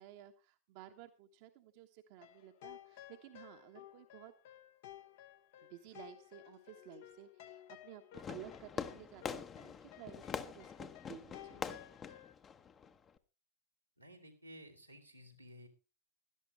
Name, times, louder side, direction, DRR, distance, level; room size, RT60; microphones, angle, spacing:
voice 1, 0.0-4.3 5.7-11.8, right 12 dB, 45° right, 6 dB, 1.1 m, -55 dB
sound 1, 2.2-12.3, left 13 dB, 50° left, 0.9 m, -56 dB
Fireworks, 8.1-13.2, left 6 dB, 25° left, 0.9 m, -44 dB
voice 2, 14.0-15.7, equal, 90° right, -2 dB, 2.6 m, -55 dB
16.5 x 12.0 x 3.2 m, 0.31 s
figure-of-eight pair, 90°, 0 cm